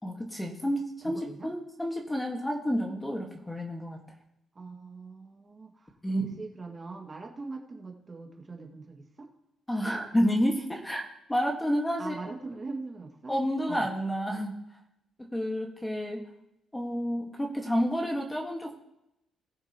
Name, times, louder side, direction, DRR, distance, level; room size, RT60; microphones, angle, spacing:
voice 1, 0.0-4.0 6.0-6.3 9.7-11.0 11.3-12.2 13.3-14.6 15.3-16.2 16.7-18.7, equal, 10° left, 1 dB, 1.7 m, -29 dB
voice 2, 1.0-1.5 4.6-9.3 12.0-13.4 13.7-13.9, right 3 dB, 30° right, 1 dB, 2.1 m, -42 dB
19.5 x 6.6 x 3.0 m, 0.83 s
cardioid pair, 90°, 0 cm